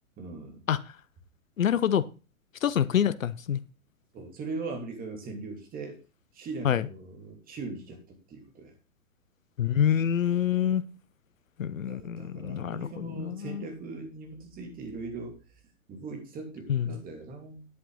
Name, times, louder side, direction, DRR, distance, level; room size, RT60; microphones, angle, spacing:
voice 1, 0.2-0.6 4.1-6.0 6.3-8.7 11.8-15.4 15.9-17.7, right 3 dB, 20° right, 3 dB, 2.9 m, -40 dB
voice 2, 1.6-2.0 2.6-3.6 6.6-6.8 9.6-10.8 11.6-13.6 16.7-16.9, left 9 dB, 70° left, 18 dB, 0.8 m, -26 dB
11.0 x 7.5 x 3.9 m, 0.33 s
figure-of-eight pair, 115°, 41 cm